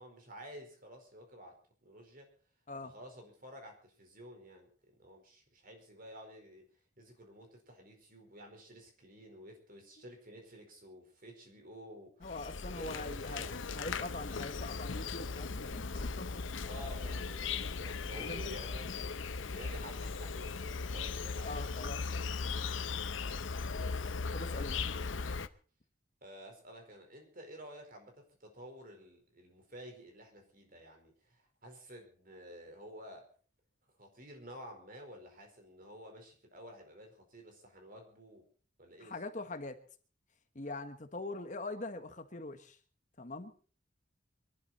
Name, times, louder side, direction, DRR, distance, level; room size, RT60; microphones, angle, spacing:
voice 1, 0.0-1.6 1.8-2.3 2.8-6.6 7.0-12.3 12.6-14.0 16.7-19.1 19.5-21.6 23.7-24.2 26.2-31.4 31.6-33.3 34.0-38.4 38.8-39.2, equal, 50° right, 3 dB, 4.6 m, -51 dB
Insect, 12.2-25.5, left 4 dB, 85° left, 0.8 m, -38 dB
voice 2, 12.2-16.4 18.1-18.5 21.4-22.3 24.3-24.9 39.0-39.8 40.5-42.8 43.2-43.5, left 2 dB, 40° left, 8 dB, 1.3 m, -43 dB
24.5 x 12.0 x 4.3 m, 0.41 s
head